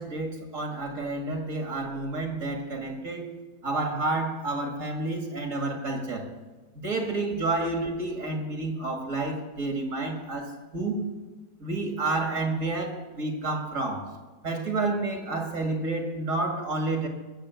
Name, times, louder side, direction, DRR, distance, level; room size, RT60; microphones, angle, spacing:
voice 1, 0.0-3.3 3.6-6.3 6.7-11.0 11.6-14.1 14.4-17.1, right 2 dB, 60° right, 3 dB, 2.4 m, -30 dB
20.5 x 7.1 x 6.9 m, 1.3 s
omnidirectional pair, 1.5 m